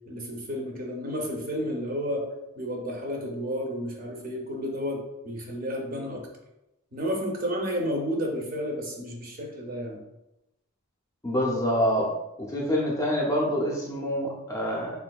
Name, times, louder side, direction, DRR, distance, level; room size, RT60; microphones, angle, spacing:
voice 1, 0.1-2.2 2.6-6.3 6.9-10.0, equal, 40° right, 0 dB, 0.6 m, -31 dB
voice 2, 11.2-12.1 12.4-15.0, equal, 15° left, -2 dB, 0.4 m, -26 dB
3.5 x 2.6 x 2.2 m, 0.91 s
head